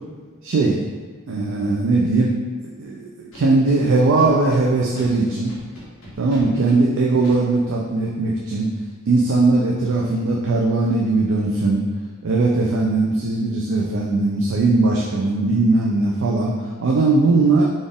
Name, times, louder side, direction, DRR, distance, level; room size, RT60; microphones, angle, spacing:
voice 1, 0.4-0.8 1.3-2.3 2.8-5.5 6.2-8.8 9.1-11.8 12.2-17.7, right 3 dB, 60° right, -2 dB, 0.4 m, -19 dB
Scratching (performance technique), 3.3-4.6 4.9-5.1 5.5-6.8 7.2-7.3, equal, 60° left, 1.2 m, -41 dB
4.1 x 2.5 x 3.5 m, 1.5 s
head